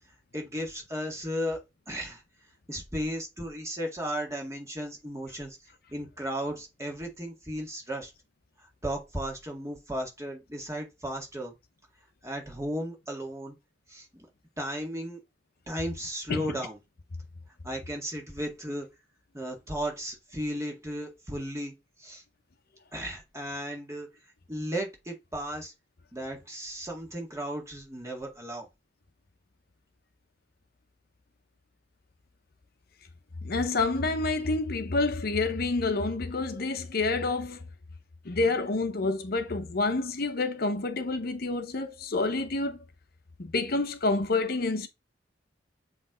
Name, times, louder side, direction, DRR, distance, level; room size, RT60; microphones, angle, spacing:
voice 1, 0.3-1.6 1.9-2.2 2.7-5.6 5.9-8.1 8.8-11.5 12.2-13.6 13.9-14.3 14.6-15.2 15.7-16.8 17.6-18.9 19.3-21.7 22.0-22.2 22.9-24.1 24.5-25.7 26.1-28.7, equal, 15° right, 2.0 m, -35 dB
voice 2, 33.4-37.6 38.2-42.8 43.4-44.9, left 3 dB, 55° left, 0.7 m, -28 dB
7.8 x 3.2 x 3.8 m
head